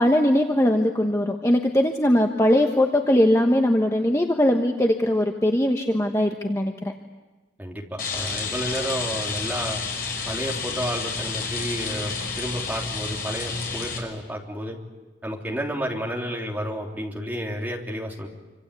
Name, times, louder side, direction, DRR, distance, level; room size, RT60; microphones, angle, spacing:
voice 1, 0.0-6.9, left 1 dB, 15° left, 3 dB, 1.2 m, -20 dB
voice 2, 7.6-9.8 10.2-14.8 15.2-18.3, equal, 10° right, -1 dB, 3.4 m, -31 dB
Rain, 8.0-14.0, left 4 dB, 50° left, 6.0 m, -30 dB
27.0 x 26.0 x 8.4 m, 1.2 s
head